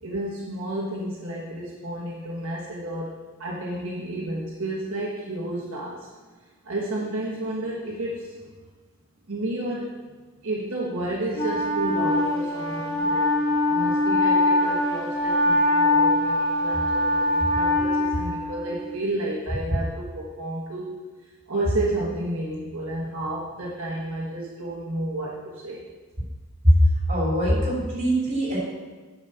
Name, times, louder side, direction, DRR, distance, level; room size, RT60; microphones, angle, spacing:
voice 1, 0.0-3.1 3.4-6.1 6.6-8.4 9.3-20.9 21.5-25.8, right 1 dB, 60° right, -5 dB, 1.3 m, -31 dB
Wind instrument woodwind instrument, 11.3-18.9, left 1 dB, 15° left, 2.8 m, -23 dB
voice 2, 27.1-28.6, equal, 30° right, -5 dB, 3.0 m, -21 dB
8.7 x 5.2 x 5.7 m, 1.3 s
head